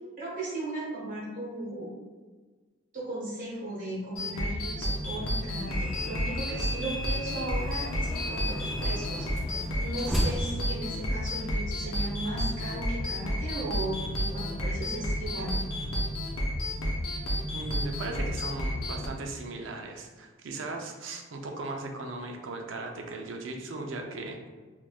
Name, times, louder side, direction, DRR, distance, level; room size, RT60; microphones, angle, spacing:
voice 1, 0.2-1.9 2.9-9.3 9.8-15.6, right 1 dB, 40° right, -6 dB, 1.1 m, -36 dB
sound 1, 4.1-19.1, equal, 80° left, 0.7 m, -31 dB
sound 2, 5.7-11.5, equal, ahead, 0.4 m, -36 dB
voice 2, 17.5-24.5, right 2 dB, 65° right, 2 dB, 0.4 m, -38 dB
3.4 x 2.5 x 2.3 m, 1.4 s
head